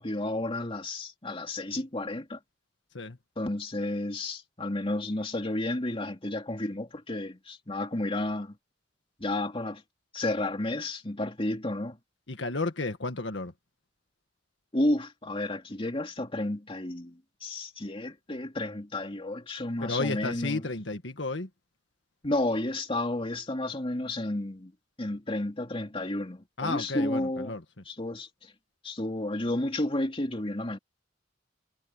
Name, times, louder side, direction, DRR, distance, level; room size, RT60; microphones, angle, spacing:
voice 1, 0.0-2.4 3.4-8.5 9.2-9.8 10.1-12.0 14.7-20.6 22.2-24.7 25.0-27.6 27.9-28.5 28.8-30.8, left 1 dB, 30° left, 2.8 m, -31 dB
voice 2, 12.3-13.5 19.8-21.5 26.6-27.6, left 3 dB, 75° left, 1.7 m, -32 dB
head